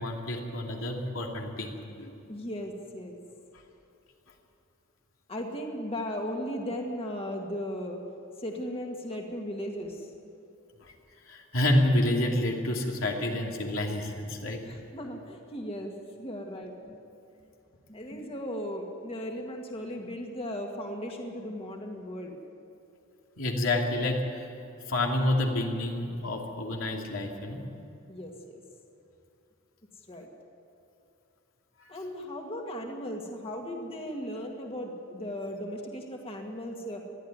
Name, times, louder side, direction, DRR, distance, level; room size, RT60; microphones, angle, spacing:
voice 1, 0.0-1.7 2.0-2.1 10.8-10.9 11.3-14.6 23.4-24.5 24.9-27.6 31.8-31.9, left 1 dB, 90° left, 0 dB, 2.8 m, -28 dB
voice 2, 2.3-3.2 5.3-8.0 8.4-10.1 14.7-15.9 16.2-17.0 17.9-22.4 28.1-28.6 30.1-30.3 31.9-37.1, equal, 30° left, 1 dB, 1.9 m, -37 dB
21.0 x 13.0 x 9.7 m, 2.8 s
head